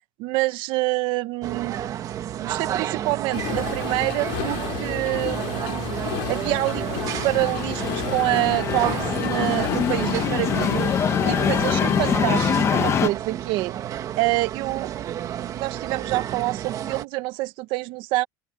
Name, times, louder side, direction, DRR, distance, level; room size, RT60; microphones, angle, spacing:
voice 1, 0.2-1.8 2.3-5.9 6.3-10.9 11.3-13.7 14.2-14.9 15.4-18.3, right 20 dB, 50° right, 1.3 m, -26 dB
sound 1, 1.4-17.0, right 11 dB, 30° right, 1.4 m, -31 dB
sound 2, 3.3-12.2, left 28 dB, 60° left, 7.1 m, -32 dB
sound 3, 6.8-13.1, left 8 dB, 25° left, 1.3 m, -25 dB
open air
supercardioid pair, 155°, 11 cm